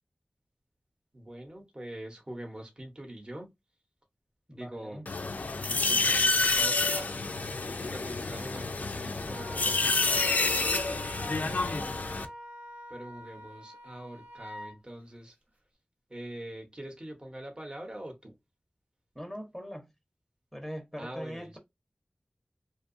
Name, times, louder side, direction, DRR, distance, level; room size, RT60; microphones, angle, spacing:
voice 1, 1.1-3.5 4.5-5.0 5.6-7.2 7.6-10.7 11.5-11.7 12.9-15.3 16.1-18.3 21.0-21.5, right 1 dB, 35° right, 0.9 m, -44 dB
voice 2, 4.5-5.2 11.4-11.9 19.1-19.9 20.5-21.6, equal, ahead, 0.8 m, -42 dB
sound 1, 5.1-12.3, left 3 dB, 70° left, 0.3 m, -28 dB
Wind instrument woodwind instrument, 9.2-14.8, right 1 dB, 70° right, 1.0 m, -46 dB
2.7 x 2.3 x 2.5 m
wide cardioid pair, 60°, 3 cm